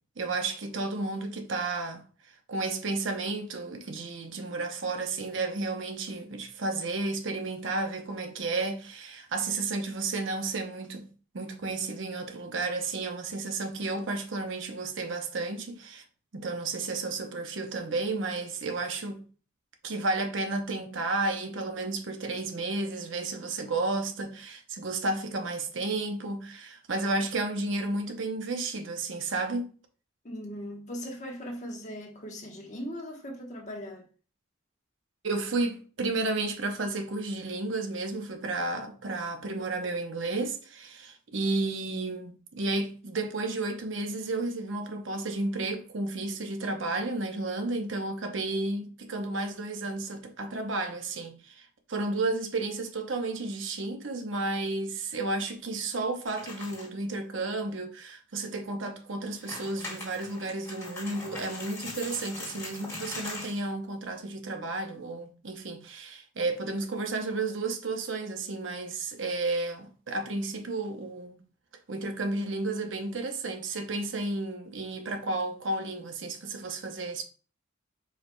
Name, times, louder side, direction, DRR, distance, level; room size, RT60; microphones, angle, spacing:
voice 1, 0.2-11.1 11.3-16.0 16.3-19.2 19.8-29.7 35.2-71.4 71.9-77.2, right 2 dB, 65° right, 0.8 m, -32 dB
voice 2, 30.2-34.0, equal, 35° left, 1.1 m, -39 dB
sound 1, 56.3-57.0 57.4-57.5 58.1-58.2 59.2-63.7, left 2 dB, 15° left, 1.7 m, -41 dB
4.7 x 4.6 x 2.2 m
head